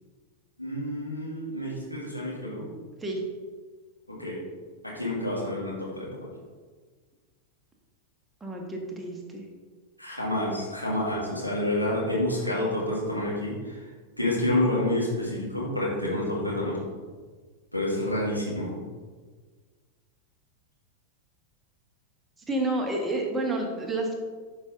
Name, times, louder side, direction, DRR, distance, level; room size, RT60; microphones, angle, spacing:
voice 1, 0.6-2.7 4.1-4.4 4.8-6.4 10.0-13.9 14.2-16.8 17.7-18.8, left 1 dB, 90° left, -5 dB, 2.0 m, -29 dB
voice 2, 8.4-9.5 22.5-24.1, right 2 dB, 10° right, 0 dB, 1.3 m, -29 dB
11.0 x 5.6 x 2.6 m, 1.5 s
figure-of-eight pair, 90°, 0 cm